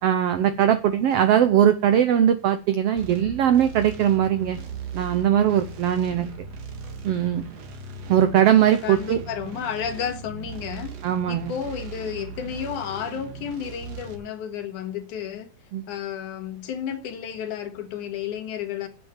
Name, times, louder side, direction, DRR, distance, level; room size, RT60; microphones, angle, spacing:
voice 1, 0.0-4.6 4.9-6.3 7.0-7.4 8.1-9.2 11.0-11.5 15.7-15.8, right 10 dB, 75° right, 1.4 m, -20 dB
sound 1, 3.0-14.2, right 5 dB, 60° right, 2.4 m, -38 dB
voice 2, 8.8-10.9 11.3-15.5 15.9-18.9, left 8 dB, 75° left, 2.9 m, -32 dB
9.5 x 8.4 x 7.3 m
omnidirectional pair, 3.7 m